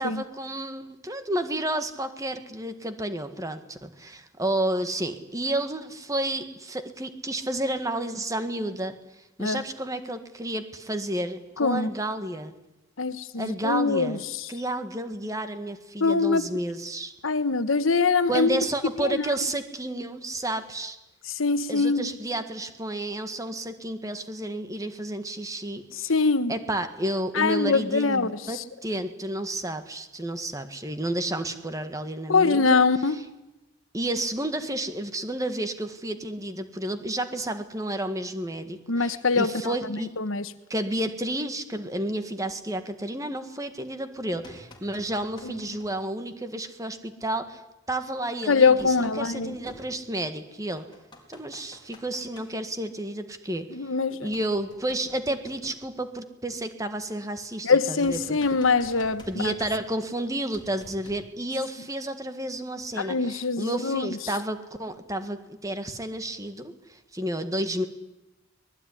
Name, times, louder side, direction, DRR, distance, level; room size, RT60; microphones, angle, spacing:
voice 1, 0.0-9.0 9.4-12.5 13.3-14.2 14.5-17.1 18.3-21.0 21.7-33.2 33.9-40.1 40.7-47.6 47.9-50.9 51.3-53.7 54.2-58.4 59.3-67.8, right 1 dB, 15° right, 1.8 m, -31 dB
voice 2, 11.6-11.9 13.0-14.2 16.0-16.4 17.2-18.5 19.0-19.2 21.3-22.1 26.1-26.5 27.3-28.6 32.3-33.2 38.9-40.5 45.4-45.5 48.5-49.5 53.7-54.3 57.6-59.5 63.0-64.1, left 4 dB, 85° left, 1.3 m, -23 dB
sound 1, 44.2-45.9 47.4-47.5 48.6-50.3 50.7-52.5 54.3-56.1 58.0-60.1 60.5-61.3, left 1 dB, 20° left, 4.0 m, -48 dB
24.5 x 19.5 x 10.0 m
head